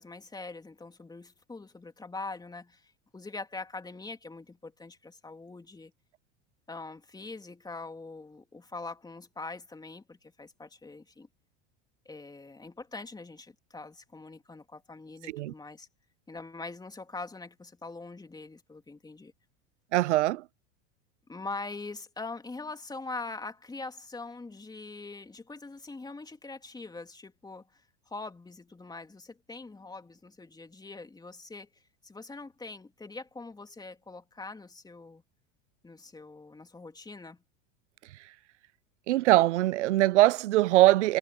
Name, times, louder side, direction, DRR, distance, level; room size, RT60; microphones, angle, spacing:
voice 1, 0.0-5.9 6.7-11.3 12.0-15.9 16.3-19.3 21.3-27.8 28.1-31.7 32.0-35.2 35.8-37.4, left 3 dB, 10° left, 3.2 m, -43 dB
voice 2, 19.9-20.4 39.1-41.2, right 16 dB, 85° right, 0.5 m, -22 dB
hypercardioid pair, 100°, 35 cm